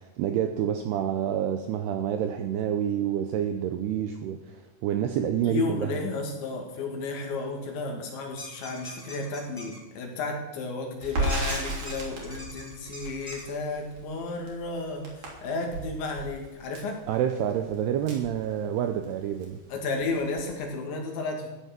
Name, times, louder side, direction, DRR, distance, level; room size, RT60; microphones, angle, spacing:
voice 1, 0.0-5.9 17.1-19.6, right 9 dB, 85° right, 6 dB, 2.4 m, -28 dB
voice 2, 5.5-17.0 19.7-21.5, left 3 dB, 70° left, 2 dB, 4.3 m, -33 dB
sound 1, 8.4-9.8 11.3-13.4, equal, 10° right, 1.3 m, -42 dB
Crackle, 11.0-19.1 19.4-19.5 19.9-20.6, right 1 dB, 50° right, 4.4 m, -35 dB
15.0 x 9.6 x 5.9 m, 1.2 s
omnidirectional pair, 5.6 m